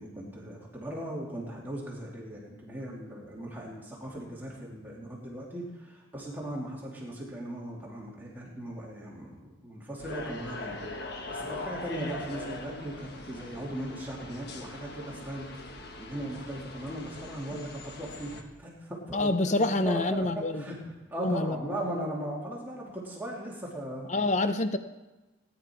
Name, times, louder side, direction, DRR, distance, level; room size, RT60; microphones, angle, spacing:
voice 1, 0.0-10.7 11.3-24.1, right 1 dB, 10° right, -5 dB, 2.8 m, -38 dB
sound 1, 10.0-18.4, left 2 dB, 55° left, 1.4 m, -41 dB
voice 2, 19.1-20.7 21.2-21.6 24.1-24.8, left 2 dB, 35° left, 10 dB, 0.7 m, -27 dB
18.5 x 10.5 x 4.6 m, 1.1 s
head